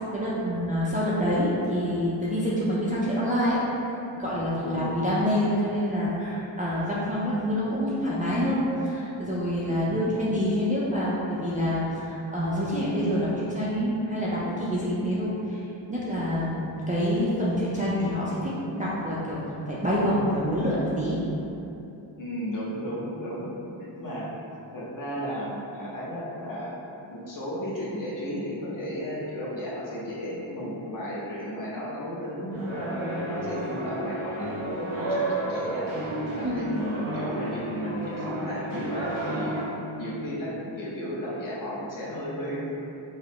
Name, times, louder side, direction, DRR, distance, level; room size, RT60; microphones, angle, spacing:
voice 1, 0.0-15.6 15.9-19.4 19.7-21.2 36.4-36.7, equal, 20° right, -9 dB, 0.3 m, -27 dB
voice 2, 9.8-10.2 22.2-23.5 23.8-24.3 24.7-26.7 27.1-35.9 36.4-39.6 40.0-42.7, equal, 45° left, -7 dB, 0.8 m, -34 dB
sound 1, 32.5-39.6, right 2 dB, 90° right, 0.9 m, -32 dB
5.1 x 2.0 x 2.9 m, 2.9 s
wide cardioid pair, 145°, 47 cm